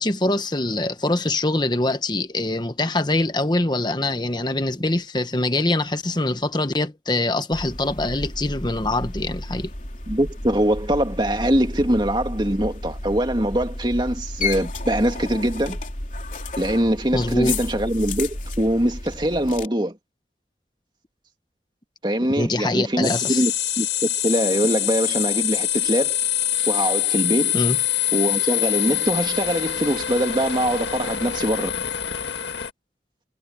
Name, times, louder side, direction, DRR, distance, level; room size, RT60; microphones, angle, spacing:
voice 1, 0.0-9.7 17.1-17.6 22.4-23.4 27.5-27.8, left 2 dB, 25° left, 1.2 m, -24 dB
sound 1, 7.5-19.7, left 2 dB, 45° left, 3.5 m, -32 dB
voice 2, 10.1-15.8 16.6-20.0 22.0-26.2 26.7-27.6 28.1-31.7, right 1 dB, 25° right, 2.3 m, -23 dB
sound 2, 23.0-32.7, left 11 dB, 85° left, 1.9 m, -25 dB
head